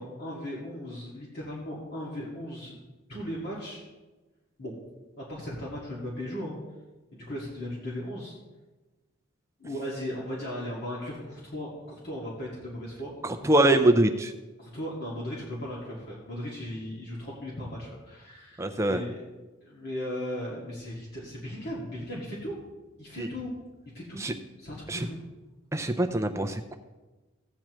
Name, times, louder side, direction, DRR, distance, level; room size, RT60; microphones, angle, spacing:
voice 1, 0.0-2.7 3.1-3.8 4.6-4.7 5.2-6.6 7.1-8.3 9.6-13.7 14.6-19.2 19.6-22.5 23.0-23.5 23.9-24.2 24.6-25.2, left 1 dB, 50° left, -5 dB, 2.1 m, -37 dB
voice 2, 13.4-14.3 18.6-19.0 23.2-23.3 24.2-24.3 24.9-25.0 25.7-26.7, right 1 dB, 15° right, 6 dB, 0.4 m, -23 dB
15.5 x 8.7 x 3.1 m, 1.2 s
head